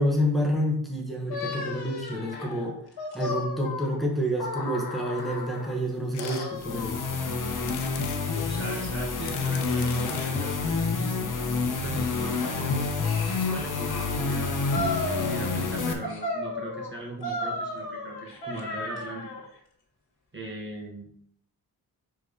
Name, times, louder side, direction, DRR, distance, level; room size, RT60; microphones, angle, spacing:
voice 1, 0.0-2.8 3.1-7.0, equal, ahead, -2 dB, 1.6 m, -28 dB
sound 1, 1.3-5.8 6.2-7.7 8.3-9.3 9.6-10.7 11.2-14.1 14.7-15.7 16.0-19.5, left 2 dB, 70° left, 1.8 m, -36 dB
sound 2, 6.1-6.5 6.9-7.0 7.6-8.2 9.0-10.4 11.2-11.3 11.5-11.6 11.8-11.9, left 10 dB, 85° left, 0.6 m, -42 dB
sound 3, 6.6-15.9, left 4 dB, 50° left, 1.2 m, -28 dB
voice 2, 8.3-10.9 11.8-19.3 20.3-21.1, right 1 dB, 30° right, -2 dB, 1.4 m, -39 dB
4.9 x 4.6 x 5.1 m, 0.67 s
cardioid pair, 95°, 40 cm